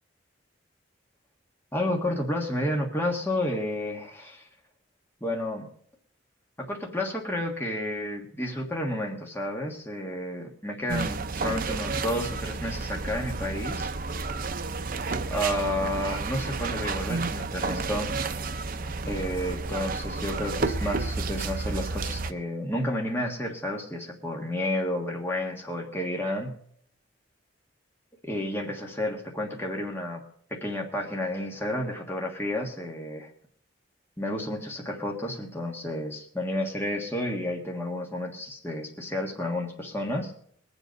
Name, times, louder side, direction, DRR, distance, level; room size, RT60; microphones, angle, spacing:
voice 1, 1.7-4.4 5.2-5.7 6.6-13.9 15.3-18.1 19.0-26.6 28.2-30.2 30.5-33.3 34.2-40.3, left 1 dB, 10° left, 0 dB, 1.6 m, -31 dB
sound 1, 10.9-22.3, right 3 dB, 45° right, 0.6 m, -31 dB
21.5 x 7.9 x 5.3 m, 0.64 s
head